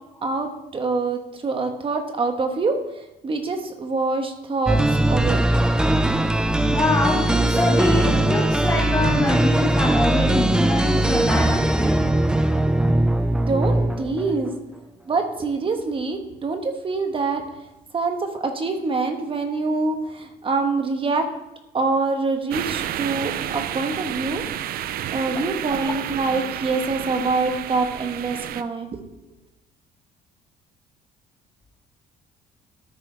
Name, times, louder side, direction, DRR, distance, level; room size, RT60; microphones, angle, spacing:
voice 1, 0.2-2.8 3.2-5.5 13.3-14.5 15.1-17.5 17.9-21.3 21.7-24.4 25.1-29.0, right 3 dB, 30° right, 6 dB, 1.2 m, -25 dB
sound 1, 4.7-14.5, right 1 dB, 5° right, 0.4 m, -20 dB
voice 2, 6.2-12.3 14.2-14.3, left 2 dB, 15° left, -2 dB, 1.5 m, -25 dB
sound 2, 22.5-28.6, right 11 dB, 60° right, 0.5 m, -30 dB
13.0 x 6.3 x 3.3 m, 0.97 s
cardioid pair, 110°, 17 cm